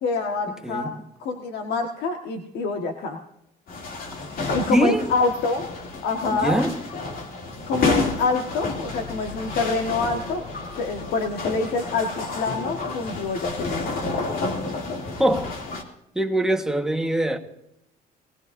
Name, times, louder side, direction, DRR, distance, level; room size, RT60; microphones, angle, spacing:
voice 1, 0.0-0.9 1.2-3.2 4.5-5.6 6.0-6.6 7.6-10.4 10.8-13.8, left 3 dB, 75° left, 1.6 m, -26 dB
voice 2, 0.6-1.0 4.7-5.1 6.3-6.8 15.2-15.5 16.1-17.4, right 1 dB, 5° right, 1.5 m, -23 dB
sound 1, 3.7-15.8, left 3 dB, 60° left, 2.9 m, -30 dB
sound 2, 8.7-12.4, left 4 dB, 25° left, 4.7 m, -41 dB
19.5 x 19.0 x 2.7 m
cardioid pair, 110°, 17 cm